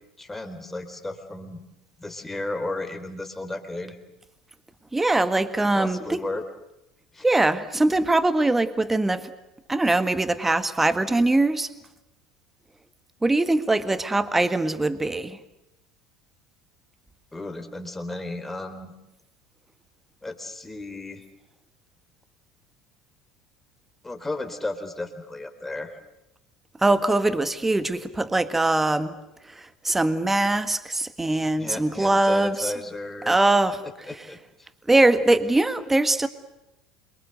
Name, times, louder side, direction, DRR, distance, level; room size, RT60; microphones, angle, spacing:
voice 1, 0.2-1.6 2.0-4.0 5.7-6.4 7.1-7.2 17.3-18.9 20.2-21.2 24.0-26.0 31.6-33.4 34.1-34.7, left 2 dB, 10° left, 6 dB, 3.9 m, -34 dB
voice 2, 4.9-6.2 7.2-9.3 9.7-11.7 13.2-15.4 26.8-29.1 29.5-32.7 33.3-33.8 34.9-36.3, right 2 dB, 10° right, 12 dB, 1.7 m, -22 dB
27.5 x 24.0 x 8.1 m, 0.91 s
figure-of-eight pair, 70°, 2 cm